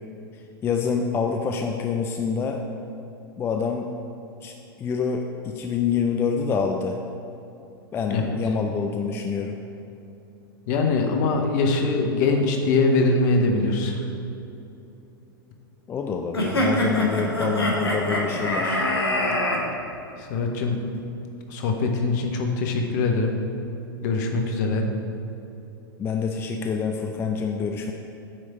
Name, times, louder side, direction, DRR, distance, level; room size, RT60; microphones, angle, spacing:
voice 1, 0.6-2.6 3.4-3.9 4.4-7.0 7.9-9.6 15.9-18.9 26.0-27.9, left 5 dB, 20° left, 3 dB, 0.3 m, -26 dB
voice 2, 10.7-14.1 20.2-20.8 21.5-23.4 24.0-24.9, left 3 dB, 50° left, 3 dB, 0.9 m, -22 dB
sound 1, 16.3-19.6, left 1 dB, 85° left, 1.0 m, -24 dB
8.5 x 3.2 x 4.3 m, 2.8 s
figure-of-eight pair, 100°, 12 cm